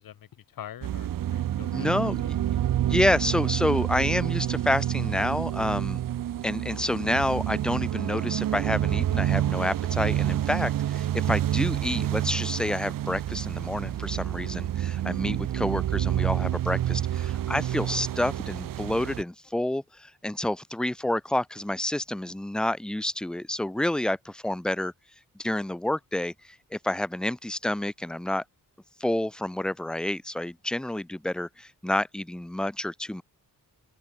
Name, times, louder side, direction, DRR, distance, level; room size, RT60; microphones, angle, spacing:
voice 1, 0.0-2.3, left 10 dB, 75° left, 1.0 m, -45 dB
sound 1, 0.8-19.2, right 12 dB, 70° right, 0.7 m, -28 dB
voice 2, 1.7-2.4 2.9-6.0 6.4-24.9 25.4-26.3 26.7-28.4 29.0-33.2, left 1 dB, ahead, 0.4 m, -29 dB
open air
wide cardioid pair, 105°, 35 cm